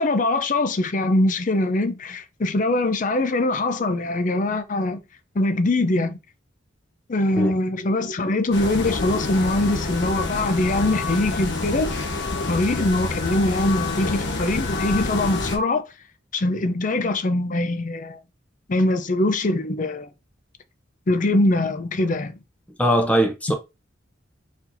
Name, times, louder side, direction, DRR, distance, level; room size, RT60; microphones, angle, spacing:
voice 1, 0.0-5.0 5.3-6.2 7.1-11.9 12.5-15.8 16.3-18.2 18.7-20.1 21.1-22.3, left 2 dB, 45° left, 0.6 m, -22 dB
sound 1, 8.5-15.6, left 3 dB, 65° left, 1.1 m, -27 dB
voice 2, 22.8-23.5, equal, 10° left, 0.9 m, -20 dB
4.4 x 4.2 x 2.6 m
head